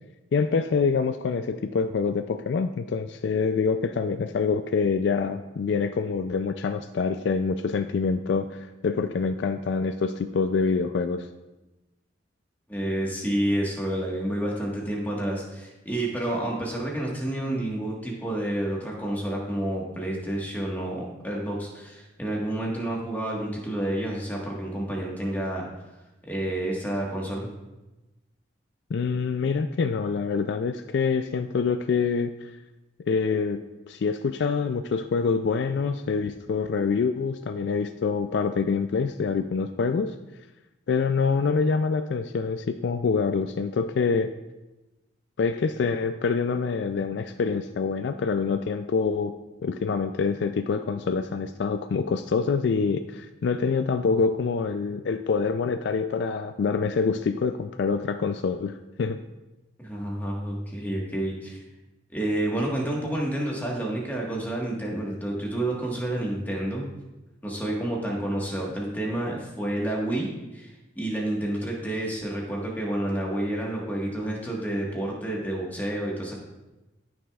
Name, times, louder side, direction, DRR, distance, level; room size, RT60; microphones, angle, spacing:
voice 1, 0.3-11.3 28.9-32.5 33.1-40.1 40.9-44.3 45.4-49.3 49.6-59.2, left 5 dB, 60° left, 8 dB, 0.3 m, -26 dB
voice 2, 12.7-25.7 26.3-27.5 59.8-61.6 62.1-66.8 67.4-76.3, right 1 dB, 10° left, -3 dB, 1.4 m, -29 dB
13.5 x 6.1 x 2.4 m, 1.0 s
head